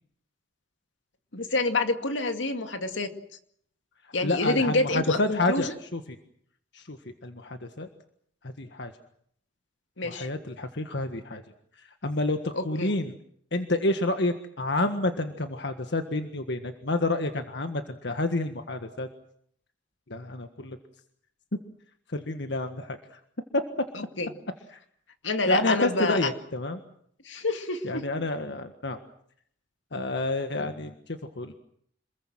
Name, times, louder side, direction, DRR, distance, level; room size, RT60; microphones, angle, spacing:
voice 1, 1.3-3.1 4.1-5.7 10.0-10.3 12.5-12.9 23.9-24.3 25.2-26.2 27.3-28.0 30.6-30.7, left 2 dB, 80° left, 7 dB, 2.3 m, -28 dB
voice 2, 4.0-6.2 6.7-7.9 8.4-8.9 10.0-11.4 11.8-13.1 13.5-19.1 20.1-20.8 22.1-23.2 23.5-23.6 24.7-24.8 25.5-26.8 27.8-29.0 29.9-31.6, left 2 dB, 65° left, 7 dB, 1.6 m, -29 dB
27.5 x 21.5 x 7.6 m, 0.67 s
head